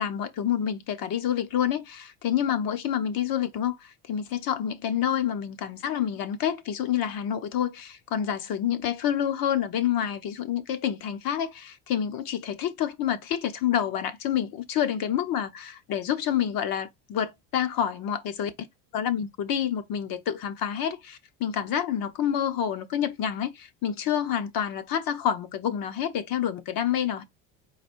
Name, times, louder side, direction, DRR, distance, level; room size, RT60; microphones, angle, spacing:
voice 1, 0.0-18.7 18.9-27.2, left 9 dB, 55° left, 1.0 m, -28 dB
4.1 x 2.4 x 4.4 m
supercardioid pair, 90°, 42 cm